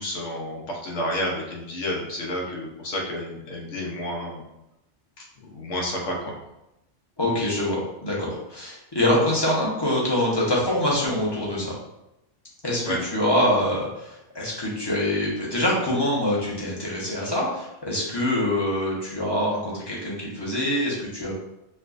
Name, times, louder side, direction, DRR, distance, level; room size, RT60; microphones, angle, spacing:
voice 1, 0.0-4.4 5.2-5.3 5.5-6.4 12.8-13.0, left 1 dB, 85° left, -1 dB, 1.1 m, -30 dB
voice 2, 7.2-11.8 12.6-21.3, left 1 dB, 25° left, -5 dB, 0.8 m, -25 dB
4.6 x 2.3 x 2.5 m, 0.88 s
omnidirectional pair, 1.2 m